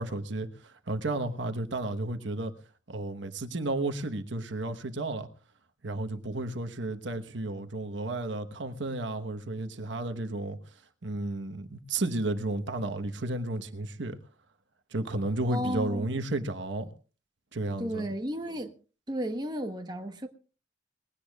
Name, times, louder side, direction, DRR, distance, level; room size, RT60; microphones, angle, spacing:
voice 1, 0.0-2.5 2.9-5.3 5.8-10.6 11.0-14.2 14.9-16.9 17.5-18.1, right 2 dB, 70° right, 1.2 m, -32 dB
voice 2, 15.5-16.1 17.8-18.7 19.1-20.3, equal, 20° right, 1.2 m, -33 dB
21.0 x 17.0 x 2.4 m
head